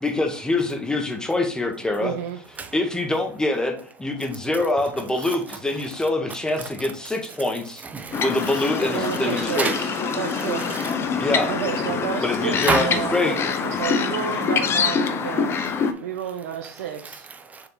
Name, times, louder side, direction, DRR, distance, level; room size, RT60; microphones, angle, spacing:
voice 1, 0.0-2.1 2.7-7.8 8.2-9.8 11.2-11.5 12.2-13.8, left 2 dB, 10° left, 1.2 m, -25 dB
voice 2, 2.0-2.4 8.9-9.9 10.2-10.6 11.5-15.5 16.0-17.3, right 8 dB, 80° right, 0.8 m, -31 dB
voice 3, 7.8-8.2 9.6-9.9 10.6-10.9 12.6-12.9 17.4-17.7, right 4 dB, 20° right, 0.9 m, -28 dB
sound 1, 8.1-15.9, left 5 dB, 30° left, 0.8 m, -25 dB
6.9 x 3.4 x 4.0 m
supercardioid pair, 110°, 8 cm